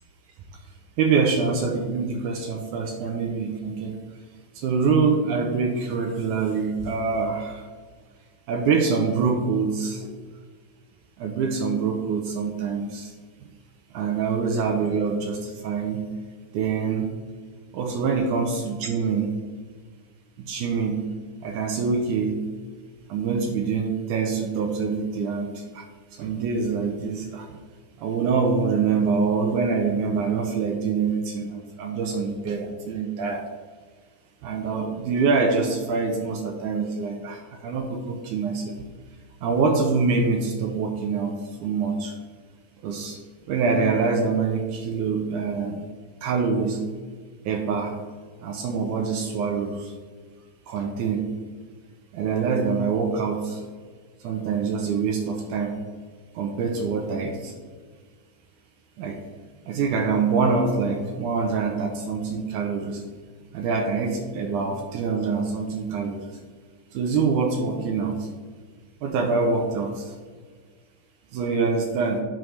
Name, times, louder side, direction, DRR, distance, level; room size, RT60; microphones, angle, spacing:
voice 1, 1.0-3.9 4.6-7.6 8.5-10.1 11.2-13.1 13.9-16.1 16.5-17.1 17.7-19.3 20.4-21.0 21.4-22.4 23.1-25.5 25.7-25.8 26.1-27.4 28.0-33.4 34.4-38.7 39.4-41.3 41.6-42.2 42.8-43.2 43.5-45.8 46.2-46.8 47.5-48.0 48.4-49.9 50.7-51.3 52.1-53.6 54.2-55.7 56.4-57.5 59.0-59.2 59.7-63.0 63.5-66.3 66.9-68.1 69.0-70.1 71.3-72.2, right 5 dB, 75° right, 3 dB, 1.9 m, -25 dB
9.1 x 3.2 x 6.3 m, 1.5 s
omnidirectional pair, 4.0 m